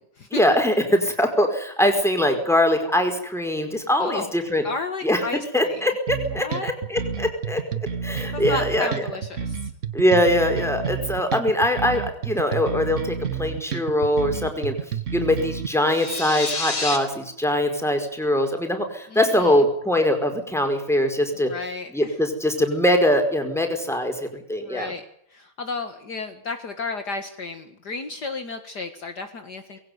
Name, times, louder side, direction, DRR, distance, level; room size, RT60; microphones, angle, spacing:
voice 1, 0.3-4.6 5.0-5.2 5.5-7.6 8.0-9.1 9.9-14.7 15.1-21.5 21.9-24.9, left 1 dB, ahead, 5 dB, 4.9 m, -22 dB
voice 2, 4.0-4.3 4.6-5.8 6.3-6.7 8.3-9.7 19.1-19.6 21.4-22.2 24.6-25.0 25.3-29.8, left 3 dB, 55° left, 7 dB, 2.3 m, -33 dB
sound 1, 6.1-15.7, right 7 dB, 40° right, 1.4 m, -30 dB
sound 2, 15.8-17.0, left 3 dB, 90° left, 5.7 m, -28 dB
21.5 x 17.5 x 9.6 m, 0.69 s
omnidirectional pair, 2.2 m